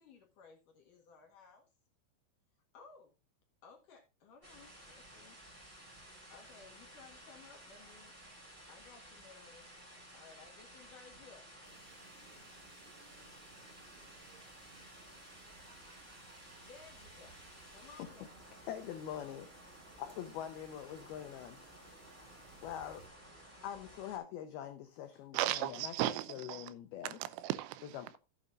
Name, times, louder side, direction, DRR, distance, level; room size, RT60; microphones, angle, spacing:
voice 1, 0.0-1.7 2.7-3.1 3.6-5.4 6.3-8.1 8.7-9.7 10.1-11.5 16.7-17.4 17.7-18.3, left 5 dB, 55° left, 2.7 m, -58 dB
sound 1, 4.4-24.2, right 1 dB, 10° right, 3.6 m, -55 dB
sound 2, 11.6-23.1, right 5 dB, 65° right, 1.3 m, -62 dB
voice 2, 18.7-19.5 20.0-21.6 22.6-23.0 23.6-25.9 26.3-27.2 27.9-28.2, left 10 dB, 85° left, 2.2 m, -44 dB
voice 3, 25.3-26.7 27.0-28.2, right 15 dB, 85° right, 3.2 m, -36 dB
14.5 x 7.9 x 2.5 m
omnidirectional pair, 5.5 m